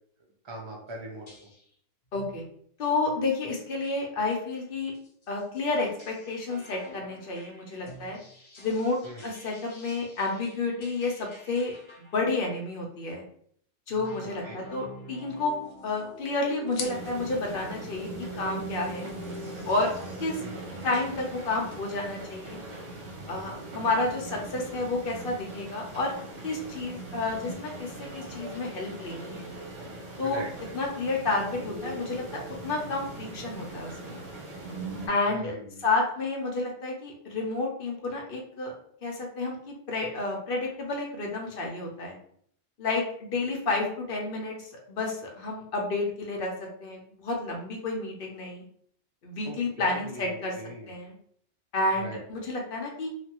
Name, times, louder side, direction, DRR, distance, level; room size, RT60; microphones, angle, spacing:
voice 1, 0.4-1.3 9.0-9.3 14.4-14.6 20.4-20.6 30.2-30.8 35.3-35.9 49.4-50.9 51.9-52.4, right 1 dB, 50° right, -2 dB, 0.3 m, -41 dB
sound 1, 0.9-1.0 1.3-1.7 2.1-2.4 2.9-3.1 3.5-3.9 4.5-12.5 13.9-19.9, left 1 dB, 35° left, 0.5 m, -47 dB
voice 2, 2.1-2.4 2.8-4.9 5.3-8.2 8.6-11.8 12.1-13.2 13.9-15.5 15.8-19.1 19.7-19.9 20.2-20.4 20.8-22.6 23.3-26.1 26.4-29.5 30.2-30.4 30.7-32.2 32.6-34.2 35.1-38.7 39.0-42.1 42.8-48.6 49.2-50.5 50.9-51.1 51.7-53.1, left 3 dB, 55° left, 0 dB, 0.8 m, -30 dB
sound 2, 15.3-22.9, left 5 dB, 90° left, 1.0 m, -48 dB
sound 3, 16.8-35.1, right 2 dB, 75° right, 1.2 m, -40 dB
3.3 x 2.2 x 2.9 m, 0.63 s
omnidirectional pair, 1.3 m